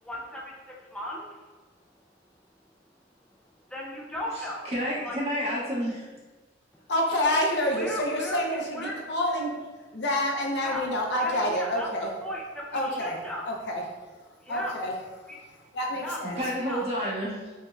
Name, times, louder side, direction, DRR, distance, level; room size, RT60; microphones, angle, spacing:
voice 1, 0.0-1.4 3.7-4.7 5.0-5.2 7.8-9.0 9.3-9.5 10.6-10.9 11.2-11.9 12.2-13.5 14.4-14.8 15.3-15.4 16.0-16.2 16.6-16.8, left 1 dB, 5° left, -3 dB, 0.4 m, -37 dB
voice 2, 4.3-6.2 16.2-17.5, equal, 35° right, -8 dB, 1.5 m, -30 dB
voice 3, 6.9-9.5 9.9-12.1 12.7-13.2 13.5-13.8 14.5-14.9 15.7-16.4, left 1 dB, 65° left, 0 dB, 0.7 m, -27 dB
5.4 x 2.9 x 2.3 m, 1.3 s
head